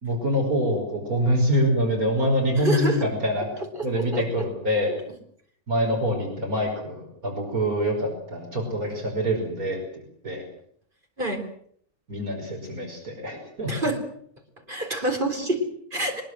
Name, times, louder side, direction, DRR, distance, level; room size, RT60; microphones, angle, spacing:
voice 1, 0.0-3.5 3.8-5.0 5.7-9.8 10.2-10.4 12.1-13.9 15.4-15.5, equal, 80° right, 1 dB, 5.8 m, -25 dB
voice 2, 2.6-3.1 3.7-4.3 11.2-11.5 13.7-14.0 14.7-16.2, right 1 dB, 35° right, 4 dB, 4.3 m, -27 dB
22.5 x 21.5 x 7.7 m, 0.65 s
omnidirectional pair, 1.5 m